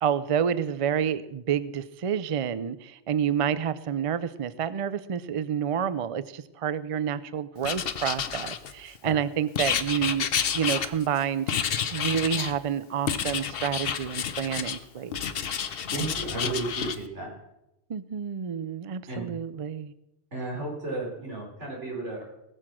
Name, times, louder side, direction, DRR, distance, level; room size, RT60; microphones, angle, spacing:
voice 1, 0.0-10.3 10.5-11.5 11.9-15.2 17.9-19.9, right 8 dB, 50° right, 16 dB, 0.4 m, -29 dB
Writing, 7.6-9.0 9.6-11.2 11.5-12.6 13.1-14.8 15.1-17.0, left 8 dB, 60° left, 0.9 m, -29 dB
voice 2, 15.9-17.3 19.1-19.3 20.3-22.2, right 2 dB, 85° right, -2 dB, 4.6 m, -33 dB
19.0 x 6.8 x 6.0 m, 0.89 s
omnidirectional pair, 1.2 m